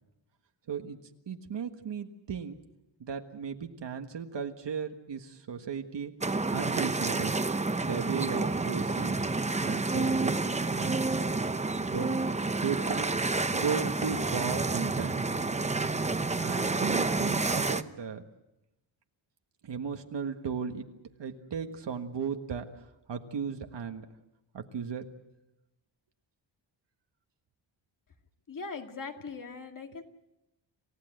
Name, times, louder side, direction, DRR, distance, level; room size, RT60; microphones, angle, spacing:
voice 1, 0.7-1.0 1.3-2.6 3.0-6.1 6.5-7.4 7.8-9.2 9.6-11.0 11.8-12.2 12.6-15.4 16.4-18.2 19.6-20.9 21.2-24.1 24.5-25.0, right 7 dB, 65° right, 5 dB, 1.6 m, -36 dB
sound 1, 6.2-17.8, right 3 dB, 15° right, 0.7 m, -29 dB
voice 2, 28.5-30.0, left 4 dB, 45° left, 5 dB, 2.2 m, -40 dB
28.0 x 16.5 x 7.9 m, 0.94 s
wide cardioid pair, 140°, 46 cm